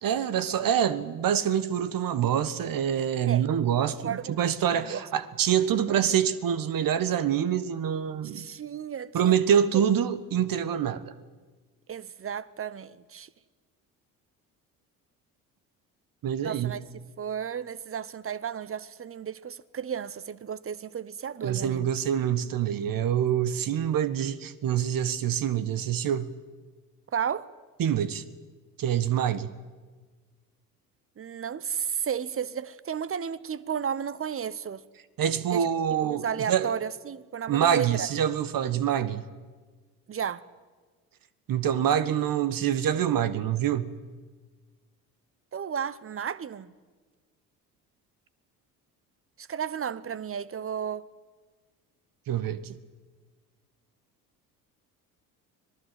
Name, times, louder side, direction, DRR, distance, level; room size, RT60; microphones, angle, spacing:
voice 1, 0.0-8.5 9.1-11.1 16.2-16.7 21.4-26.3 27.8-28.2 28.8-29.5 35.2-36.7 37.5-39.2 41.5-43.9 52.3-52.8, right 9 dB, 45° right, 1.5 m, -26 dB
voice 2, 3.9-4.4 4.7-5.0 8.2-9.9 11.9-13.3 16.4-16.8 17.2-21.9 27.1-27.5 31.2-34.8 35.5-38.1 40.1-40.5 45.5-46.7 49.4-51.1, right 8 dB, 30° right, 1.1 m, -33 dB
25.5 x 19.5 x 7.8 m
hypercardioid pair, 55°, 45 cm